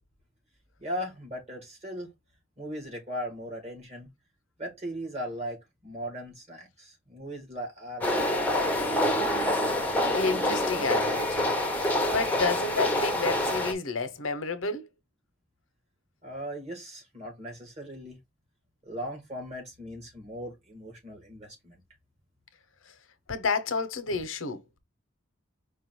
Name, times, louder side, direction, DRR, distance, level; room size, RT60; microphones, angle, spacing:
voice 1, 0.8-2.1 2.6-4.1 4.6-9.2 16.2-18.2 18.8-21.8, equal, 35° right, 1.9 m, -38 dB
sound 1, 8.0-13.7, left 1 dB, 10° left, 0.8 m, -26 dB
voice 2, 10.1-14.9 23.3-24.6, left 4 dB, 90° left, 0.8 m, -30 dB
4.9 x 2.4 x 4.4 m
head